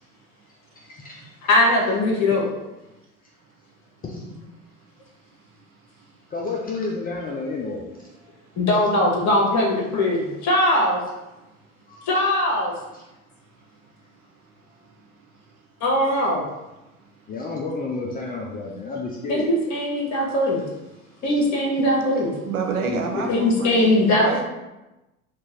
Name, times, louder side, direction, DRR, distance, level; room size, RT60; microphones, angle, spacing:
voice 1, 0.8-1.2 4.0-4.3 6.3-7.8 11.9-12.1 17.3-19.5 22.8-23.4, left 3 dB, 20° left, -2 dB, 0.5 m, -30 dB
voice 2, 1.5-2.5 8.6-11.0 12.1-12.7 15.8-16.4 19.3-20.6 21.2-22.3 23.3-24.4, left 1 dB, 40° left, -2 dB, 1.3 m, -20 dB
voice 3, 22.5-23.9 24.2-24.4, right 5 dB, 85° right, 2 dB, 0.8 m, -28 dB
3.0 x 2.4 x 4.2 m, 1.0 s
hypercardioid pair, 75°, 42 cm